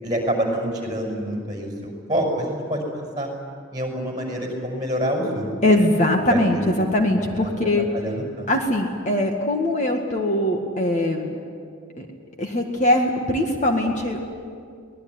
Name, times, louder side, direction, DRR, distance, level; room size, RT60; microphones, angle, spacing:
voice 1, 0.0-3.3 3.7-5.5 6.3-6.6 7.4-7.5 7.9-8.5, equal, 20° right, 0 dB, 5.9 m, -27 dB
voice 2, 5.6-7.9 8.5-11.4 11.9-12.1 12.4-14.3, left 1 dB, 35° left, 2 dB, 1.9 m, -21 dB
24.5 x 19.0 x 9.7 m, 2.2 s
head